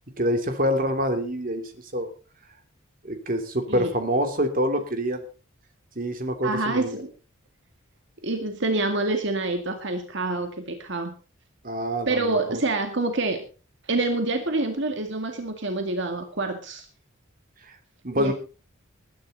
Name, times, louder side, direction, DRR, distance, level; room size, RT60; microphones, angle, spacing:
voice 1, 0.2-2.1 3.0-5.2 6.0-7.0 11.6-12.4 18.0-18.3, equal, 45° right, 6 dB, 2.7 m, -26 dB
voice 2, 6.4-7.1 8.2-11.1 12.1-13.4 13.8-16.9 18.2-18.3, right 2 dB, 60° right, 5 dB, 2.0 m, -27 dB
20.0 x 10.5 x 4.1 m, 0.35 s
head